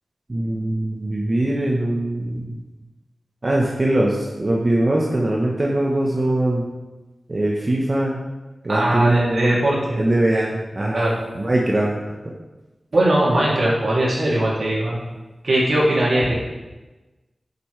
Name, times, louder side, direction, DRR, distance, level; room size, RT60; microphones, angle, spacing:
voice 1, 0.3-2.6 3.4-6.6 7.3-8.2 8.6-9.5 9.9-12.3 13.3-13.6, right 1 dB, 35° right, -3 dB, 1.1 m, -22 dB
voice 2, 8.7-10.0 10.9-11.1 12.9-15.0 15.4-16.3, right 1 dB, 70° right, -5 dB, 2.8 m, -19 dB
11.0 x 6.9 x 3.3 m, 1.1 s
wide cardioid pair, 105°, 0 cm